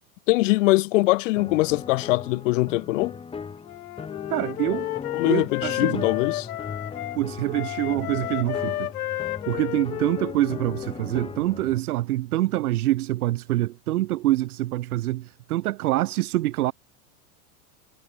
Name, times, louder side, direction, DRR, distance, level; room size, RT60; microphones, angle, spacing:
voice 1, 0.3-3.2 5.1-6.5, left 21 dB, 55° left, 1.1 m, -22 dB
sound 1, 1.4-11.8, left 5 dB, 10° left, 4.6 m, -38 dB
Wind instrument woodwind instrument, 3.6-7.2 7.5-11.3, left 15 dB, 75° left, 4.1 m, -32 dB
voice 2, 4.3-4.9 5.3-6.1 7.1-8.9 9.5-16.7, right 16 dB, 75° right, 2.3 m, -25 dB
supercardioid pair, 165°, 44 cm